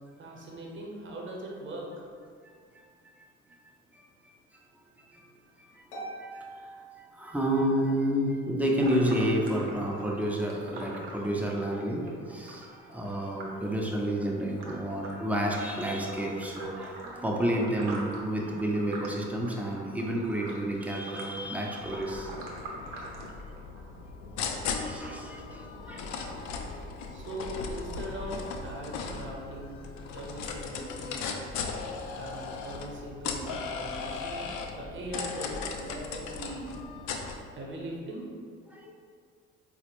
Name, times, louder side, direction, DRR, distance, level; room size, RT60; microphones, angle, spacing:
voice 1, 0.2-2.1 27.1-29.8 30.1-31.3 32.1-36.8 37.5-38.3, right 1 dB, 35° right, -1 dB, 0.8 m, -40 dB
voice 2, 2.4-2.8 5.1-5.2 5.6-5.8 6.2-6.7 7.1-22.3 24.8-26.8 33.5-33.6 38.7-38.9, right 1 dB, 5° right, -1 dB, 0.5 m, -30 dB
Harp, 5.9-7.8, right 2 dB, 80° left, 0.8 m, -44 dB
sound 1, 8.8-24.0, right 2 dB, 80° right, 0.6 m, -45 dB
sound 2, 21.8-37.4, left 5 dB, 60° left, 0.5 m, -37 dB
4.0 x 2.1 x 3.0 m, 2.1 s
hypercardioid pair, 55°, 33 cm